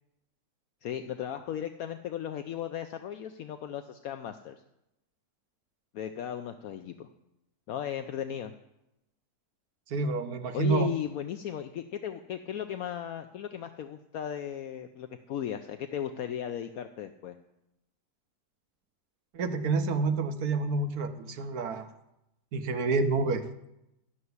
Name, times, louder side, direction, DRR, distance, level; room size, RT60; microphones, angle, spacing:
voice 1, 0.8-4.6 5.9-7.1 7.7-8.5 10.5-17.4, left 9 dB, 70° left, 8 dB, 1.1 m, -36 dB
voice 2, 9.9-10.9 19.3-21.9 22.5-23.4, right 4 dB, 80° right, 9 dB, 1.4 m, -28 dB
13.0 x 6.9 x 9.5 m, 0.88 s
omnidirectional pair, 1.6 m